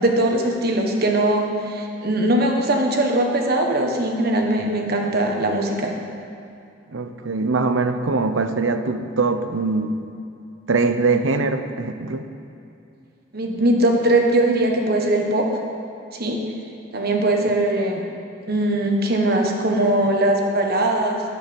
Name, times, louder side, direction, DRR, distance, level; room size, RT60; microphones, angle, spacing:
voice 1, 0.0-5.9 13.3-15.5 16.1-16.4 16.9-18.0 18.5-21.2, right 1 dB, 55° right, 2 dB, 1.3 m, -20 dB
voice 2, 6.9-10.0 10.7-12.2 17.5-17.6, right 3 dB, 90° right, 8 dB, 0.7 m, -22 dB
11.0 x 9.2 x 5.3 m, 2.6 s
head